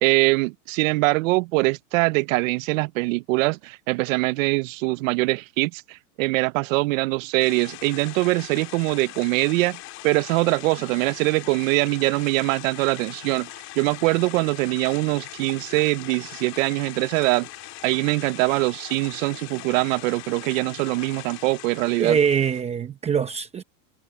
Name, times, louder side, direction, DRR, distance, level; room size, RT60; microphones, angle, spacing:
voice 1, 0.0-9.8 10.0-13.5 13.8-17.5 17.8-22.2, right 23 dB, 55° right, 0.5 m, -23 dB
sound 1, 7.4-22.6, left 16 dB, 35° left, 2.2 m, -41 dB
voice 2, 22.0-23.6, right 7 dB, 15° right, 0.7 m, -23 dB
supercardioid pair, 160°, 48 cm